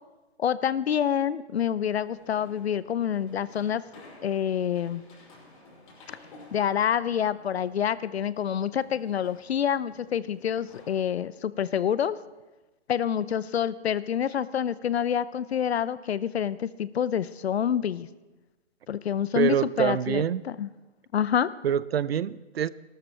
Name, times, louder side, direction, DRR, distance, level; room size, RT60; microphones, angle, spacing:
voice 1, 0.4-3.8 4.2-5.0 6.5-12.2 12.9-18.1 18.9-20.2 20.6-20.7 21.1-21.5, left 9 dB, 70° left, 18 dB, 0.7 m, -27 dB
sound 1, 1.8-11.3, left 2 dB, 50° left, 5.5 m, -54 dB
voice 2, 19.3-20.4 21.6-22.7, right 9 dB, 65° right, 19 dB, 0.5 m, -25 dB
19.0 x 12.5 x 3.4 m, 1.1 s
hypercardioid pair, 150°, 33 cm